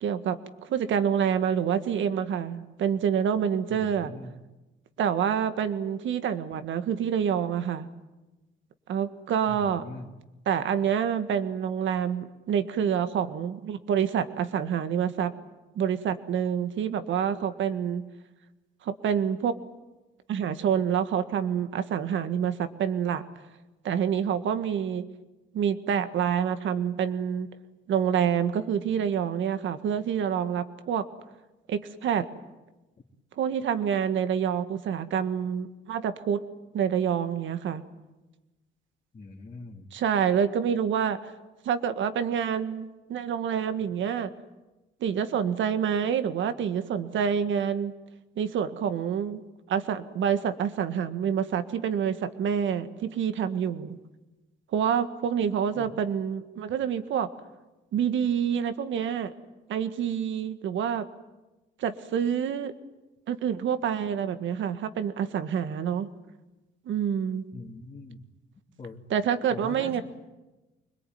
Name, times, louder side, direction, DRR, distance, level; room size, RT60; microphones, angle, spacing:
voice 1, 0.0-4.1 5.0-7.9 8.9-9.9 10.5-15.3 15.8-18.1 18.8-19.6 20.3-23.2 23.8-25.1 25.5-27.5 27.9-31.1 31.7-32.3 33.4-36.4 36.7-37.8 39.9-41.3 41.7-44.3 45.0-47.9 48.4-49.4 49.7-54.0 54.7-57.3 57.9-59.3 59.7-61.1 61.8-62.7 63.3-66.1 66.9-67.4 69.1-70.0, right 8 dB, 75° right, 10 dB, 1.8 m, -27 dB
voice 2, 3.7-4.4 9.5-10.1 39.1-39.9 55.8-55.9 67.5-68.2 68.8-69.0 69.5-69.9, left 3 dB, 35° left, -3 dB, 3.0 m, -42 dB
25.0 x 21.5 x 9.4 m, 1.1 s
cardioid pair, 90°, 20 cm